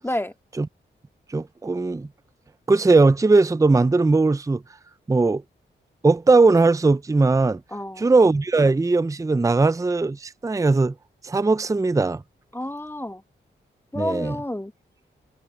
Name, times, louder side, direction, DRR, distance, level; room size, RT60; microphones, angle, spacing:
voice 1, 1.3-2.1 2.7-4.6 5.1-5.4 6.0-7.6 8.0-10.9 11.2-12.2 13.9-14.4, right 3 dB, 15° right, 0.5 m, -19 dB
voice 2, 7.7-8.1 12.5-13.2 13.9-14.7, left 1 dB, 10° left, 2.0 m, -29 dB
cardioid pair, 50°, 20 cm